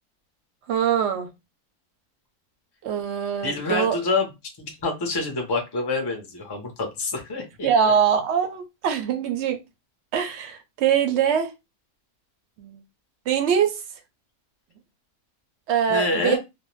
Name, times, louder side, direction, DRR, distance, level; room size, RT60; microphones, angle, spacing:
voice 1, 0.7-1.3 2.8-4.0 7.6-9.6 10.1-11.5 12.6-12.8 13.3-13.8 15.7-16.4, right 8 dB, 65° right, 0.7 m, -23 dB
voice 2, 3.4-4.3 4.6-7.7 15.9-16.4, left 3 dB, 35° left, 0.4 m, -26 dB
2.5 x 2.1 x 3.1 m
omnidirectional pair, 1.6 m